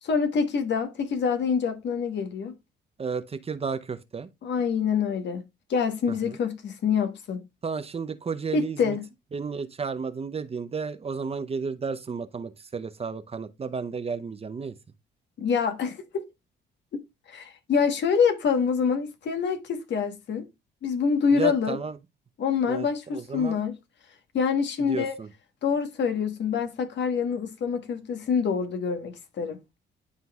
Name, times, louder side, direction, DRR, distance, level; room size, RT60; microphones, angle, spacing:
voice 1, 0.0-2.5 4.4-5.4 5.7-7.4 8.5-9.0 15.4-16.2 17.3-20.4 20.8-21.8 22.4-23.8 24.3-25.2 25.6-29.6, left 6 dB, 65° left, 1.3 m, -26 dB
voice 2, 3.0-4.3 6.1-6.4 7.6-9.0 9.3-14.7 21.3-22.0 22.7-23.6 24.8-25.3, right 5 dB, 30° right, 0.7 m, -33 dB
11.5 x 3.9 x 2.3 m
cardioid pair, 90°, 20 cm